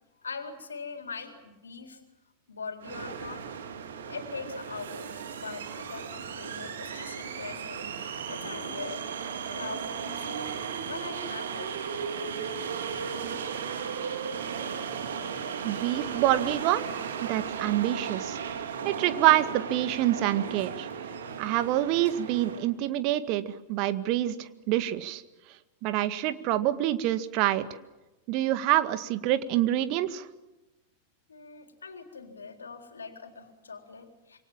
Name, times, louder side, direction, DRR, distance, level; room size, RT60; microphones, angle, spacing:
voice 1, 0.2-2.0 2.5-3.5 4.1-9.0 9.5-10.5 10.8-12.6 31.3-34.4, left 5 dB, 75° left, 6 dB, 3.9 m, -42 dB
sound 1, 2.8-22.7, right 6 dB, 60° right, 3.3 m, -36 dB
voice 2, 15.6-16.9 17.2-18.4 18.8-20.9 21.4-25.2 25.8-27.7 28.3-30.3, right 13 dB, 45° right, 12 dB, 1.9 m, -26 dB
27.5 x 24.5 x 7.5 m, 1.0 s
figure-of-eight pair, 90°, 0 cm